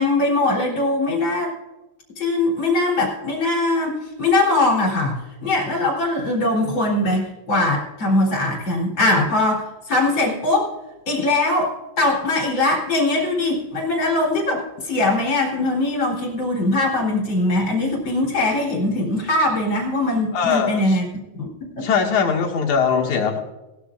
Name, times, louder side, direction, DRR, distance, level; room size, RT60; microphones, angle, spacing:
voice 1, 0.0-1.5 2.2-10.7 11.1-21.1 21.4-21.5 21.8-21.9, left 2 dB, 40° left, -1 dB, 4.2 m, -21 dB
voice 2, 20.3-20.8 21.8-23.4, left 6 dB, 80° left, 1 dB, 3.3 m, -20 dB
19.5 x 13.0 x 2.5 m, 1.0 s
omnidirectional pair, 3.4 m